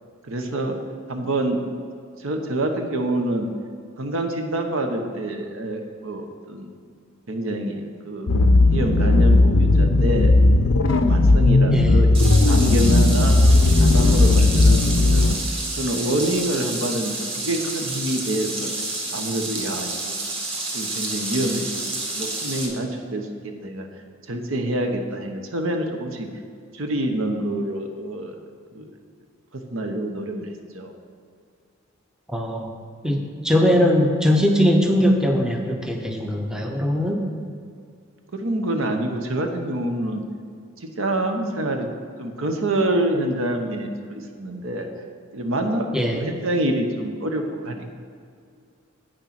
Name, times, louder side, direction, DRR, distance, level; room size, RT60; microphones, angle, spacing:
voice 1, 0.2-0.8 1.1-1.7 2.2-3.5 4.0-6.7 7.3-8.3 8.7-10.3 10.9-13.4 13.8-15.4 15.7-18.7 19.1-20.2 20.7-23.9 24.3-26.3 26.7-28.3 28.7-28.9 29.5-30.9 38.3-40.2 41.0-41.9 42.2-44.9 45.3-47.9, right 1 dB, 70° right, 4 dB, 1.0 m, -26 dB
sound 1, 8.3-15.3, left 2 dB, 85° left, 0.6 m, -16 dB
voice 2, 11.7-12.0 15.2-15.3 32.3-32.7 33.0-37.3 45.9-46.2, equal, 5° right, 2 dB, 0.7 m, -20 dB
sound 2, 12.1-22.7, right 2 dB, 25° right, 1.6 m, -29 dB
8.7 x 6.6 x 5.9 m, 2.2 s
head